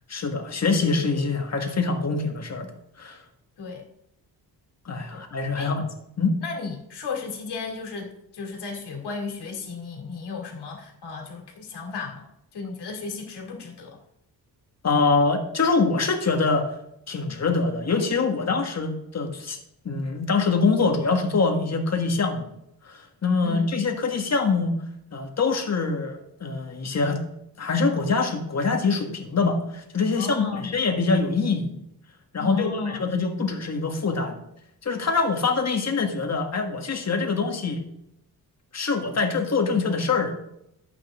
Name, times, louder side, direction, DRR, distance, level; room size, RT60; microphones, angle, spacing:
voice 1, 0.1-3.2 4.8-5.9 6.2-6.4 14.8-16.7 17.1-19.6 19.8-22.5 22.8-24.7 25.1-27.2 27.6-31.8 32.3-34.4 34.8-37.8 38.7-40.3, left 4 dB, 40° left, 4 dB, 1.8 m, -24 dB
voice 2, 6.4-12.3 12.5-14.0 23.4-23.7 30.1-30.8 32.4-33.1, left 4 dB, 80° left, 1 dB, 2.8 m, -34 dB
11.5 x 8.6 x 3.8 m, 0.80 s
cardioid pair, 120°, 40 cm